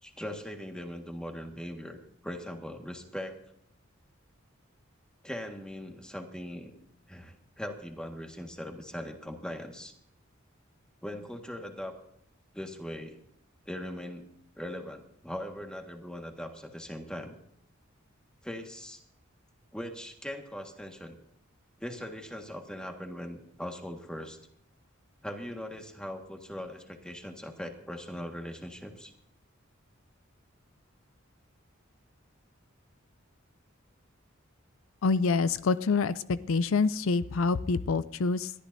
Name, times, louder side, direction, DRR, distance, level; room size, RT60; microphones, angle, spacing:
voice 1, 0.0-3.4 5.2-6.8 7.1-9.9 11.0-11.9 12.5-13.2 13.6-14.2 14.6-17.4 18.4-19.0 19.7-21.1 21.8-24.4 25.2-29.1, equal, 5° left, 3 dB, 1.6 m, -40 dB
voice 2, 35.0-38.5, left 4 dB, 80° left, 15 dB, 0.5 m, -26 dB
21.5 x 13.5 x 2.7 m, 0.73 s
head